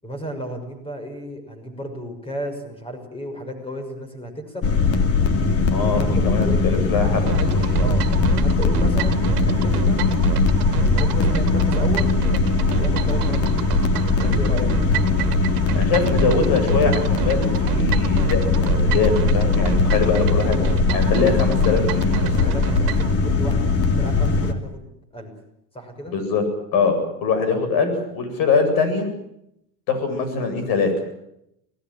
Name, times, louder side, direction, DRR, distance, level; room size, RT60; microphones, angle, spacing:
voice 1, 0.0-4.7 5.9-6.6 7.8-8.1 8.4-10.0 10.8-12.2 12.8-13.7 14.1-14.7 19.7-20.1 22.1-25.3 25.7-26.1, equal, 10° left, 7 dB, 6.1 m, -33 dB
sound 1, 4.6-24.5, left 4 dB, 30° left, 2.8 m, -20 dB
voice 2, 5.7-7.7 15.7-20.7 20.9-22.5 26.1-26.4 26.7-29.1 29.9-30.9, left 5 dB, 50° left, 8 dB, 8.0 m, -23 dB
sound 2, 7.3-23.1, right 16 dB, 90° right, 2.0 m, -28 dB
24.5 x 19.5 x 9.1 m, 0.79 s
supercardioid pair, 135°, 45 cm